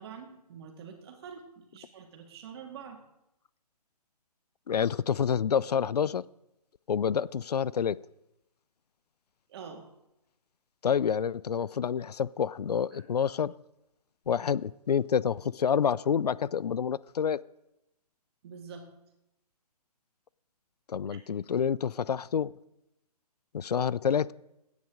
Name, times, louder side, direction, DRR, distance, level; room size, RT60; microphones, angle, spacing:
voice 1, 0.0-3.0 9.5-9.9 12.9-13.0 18.4-18.9 21.1-21.2, right 6 dB, 40° right, 3 dB, 2.1 m, -46 dB
voice 2, 4.7-6.2 6.9-8.0 10.8-13.5 14.3-17.4 20.9-22.5 23.5-24.3, left 7 dB, 80° left, 21 dB, 0.4 m, -28 dB
17.0 x 9.5 x 3.8 m, 0.88 s
figure-of-eight pair, 140°, 20 cm